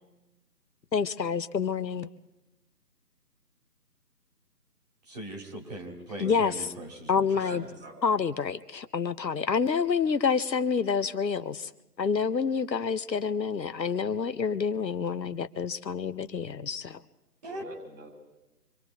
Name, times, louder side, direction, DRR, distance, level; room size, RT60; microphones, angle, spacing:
voice 1, 0.9-2.1 6.2-6.5 7.1-7.6 8.0-11.7 12.0-17.0, left 6 dB, 85° left, 12 dB, 0.9 m, -28 dB
voice 2, 5.0-7.5 17.4-17.6, right 1 dB, 25° right, -1 dB, 2.5 m, -40 dB
voice 3, 7.4-8.2 17.4-18.1, right 1 dB, 60° right, -1 dB, 7.6 m, -46 dB
29.5 x 25.0 x 3.5 m, 1.0 s
figure-of-eight pair, 160°, 49 cm